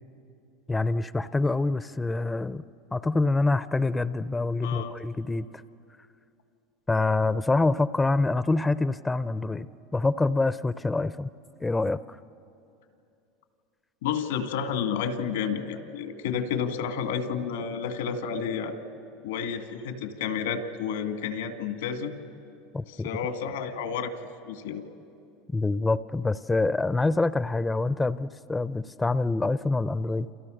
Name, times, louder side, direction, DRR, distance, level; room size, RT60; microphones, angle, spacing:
voice 1, 0.7-2.6 2.9-5.5 6.9-11.3 11.6-12.2 22.7-23.1 25.5-30.3, left 3 dB, 10° left, 15 dB, 0.5 m, -26 dB
voice 2, 4.6-4.9 14.0-18.8 19.2-22.1 22.9-24.1 24.4-24.8, left 7 dB, 90° left, 7 dB, 2.1 m, -30 dB
28.5 x 28.0 x 6.5 m, 2.6 s
supercardioid pair, 115°, 0 cm